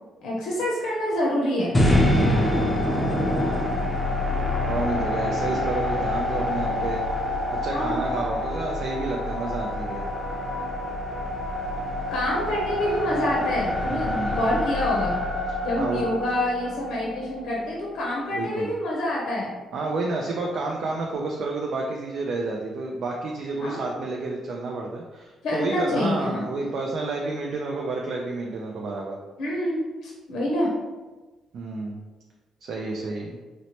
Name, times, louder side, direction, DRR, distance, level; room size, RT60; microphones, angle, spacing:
voice 1, 0.2-1.7 7.7-8.0 12.1-15.2 15.6-19.5 23.6-23.9 25.4-26.4 29.4-30.7, left 1 dB, 75° left, -4 dB, 0.6 m, -26 dB
sound 1, 1.7-17.9, left 1 dB, 20° left, 0.5 m, -26 dB
voice 2, 1.9-2.5 4.7-7.0 7.6-10.0 13.8-14.4 15.5-16.0 18.3-18.7 19.7-29.2 31.5-32.0 32.6-33.4, right 3 dB, 65° right, -1 dB, 0.3 m, -30 dB
2.9 x 2.0 x 2.8 m, 1.2 s
cardioid pair, 90°, 0 cm